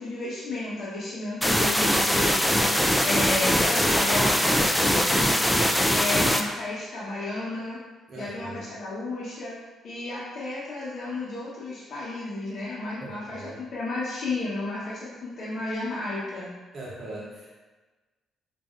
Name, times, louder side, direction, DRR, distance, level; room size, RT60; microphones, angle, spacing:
voice 1, 0.0-2.4 3.0-5.4 5.9-7.8 8.2-9.5 9.8-16.5, left 2 dB, 60° left, -8 dB, 0.9 m, -33 dB
sound 1, 1.4-6.4, equal, 5° left, 0.3 m, -22 dB
voice 2, 5.0-5.5 8.1-8.7 13.0-13.6 16.7-17.5, right 2 dB, 55° right, -5 dB, 0.9 m, -41 dB
5.3 x 2.5 x 2.4 m, 1.2 s
cardioid pair, 90°, 0 cm